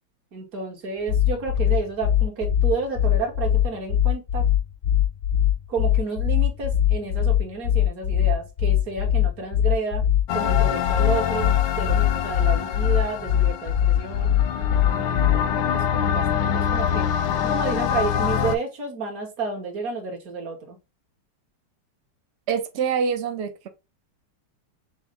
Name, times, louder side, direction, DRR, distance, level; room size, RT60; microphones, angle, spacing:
voice 1, 0.3-4.5 5.7-10.0 10.3-14.3 14.9-17.1 17.4-20.8, right 4 dB, 55° right, 1.6 m, -31 dB
sound 1, 1.1-15.5, left 10 dB, 55° left, 0.6 m, -21 dB
sound 2, 10.3-18.6, left 8 dB, 85° left, 1.4 m, -25 dB
voice 2, 22.5-23.7, right 6 dB, 90° right, 0.5 m, -25 dB
6.2 x 2.1 x 3.4 m
omnidirectional pair, 2.0 m